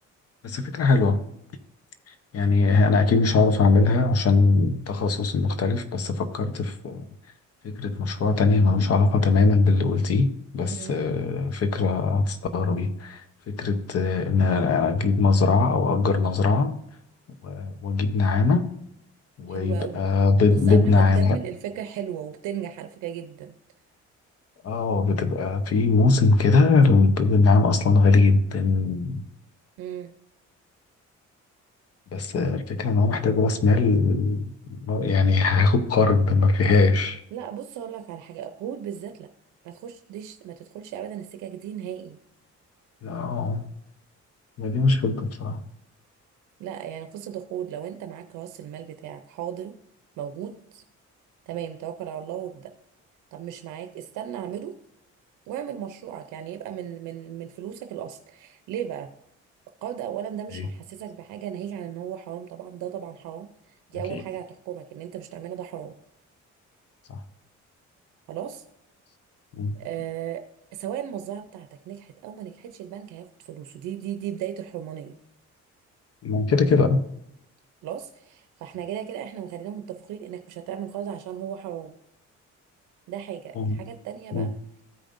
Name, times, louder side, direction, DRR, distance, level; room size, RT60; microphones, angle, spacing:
voice 1, 0.4-1.2 2.3-7.1 7.6-16.8 17.4-18.7 19.4-21.4 24.6-29.2 32.1-34.5 34.9-37.2 43.0-43.7 44.6-45.6 64.1-64.2 67.1-67.2 69.6-69.8 76.2-77.0 83.6-83.8 84.3-84.5, left 3 dB, 50° left, 0.9 m, -21 dB
voice 2, 10.7-11.0 19.5-20.1 20.5-23.6 29.8-30.1 37.3-39.3 39.6-42.2 46.6-49.7 50.2-50.8 51.5-52.7 53.3-54.7 55.5-59.1 59.8-66.0 68.3-68.6 69.7-70.5 70.7-75.2 77.8-81.9 83.1-84.5, right 10 dB, 90° right, 0.6 m, -36 dB
14.0 x 5.2 x 2.5 m
cardioid pair, 90°, 30 cm